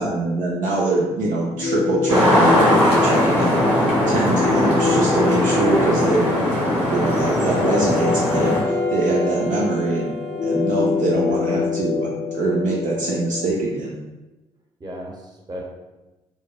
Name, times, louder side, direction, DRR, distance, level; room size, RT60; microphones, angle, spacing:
voice 1, 0.0-3.5 4.1-6.5 6.9-10.2 10.4-13.9, right 2 dB, 65° right, -3 dB, 0.5 m, -23 dB
sound 1, 1.5-13.5, left 4 dB, 55° left, 0.4 m, -25 dB
sound 2, 2.1-8.6, equal, 50° right, 1.4 m, -19 dB
Bowed string instrument, 7.9-11.3, right 1 dB, 80° right, 1.1 m, -31 dB
voice 2, 11.1-11.6 14.8-15.6, right 1 dB, 30° right, -1 dB, 0.8 m, -34 dB
3.1 x 2.1 x 2.2 m, 1.1 s
hypercardioid pair, 45°, 14 cm